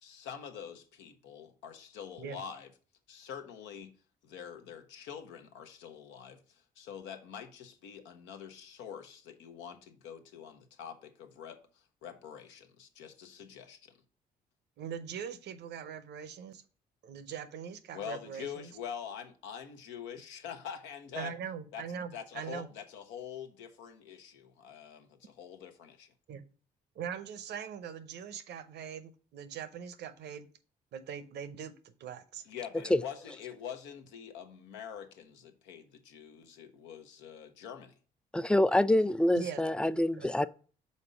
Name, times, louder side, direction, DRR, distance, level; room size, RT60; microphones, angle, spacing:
voice 1, 0.0-2.7 3.1-3.9 4.2-13.9 17.9-21.3 21.7-21.8 22.1-26.1 32.4-37.9, left 8 dB, 80° left, 0.8 m, -45 dB
voice 2, 14.8-16.6 17.0-18.7 21.2-22.7 26.3-26.4 27.0-30.5 30.9-32.4 39.4-39.6 40.1-40.5, right 7 dB, 65° right, 0.7 m, -41 dB
voice 3, 38.3-40.5, left 1 dB, 5° left, 0.3 m, -26 dB
5.3 x 4.1 x 4.9 m
hypercardioid pair, 50°, 19 cm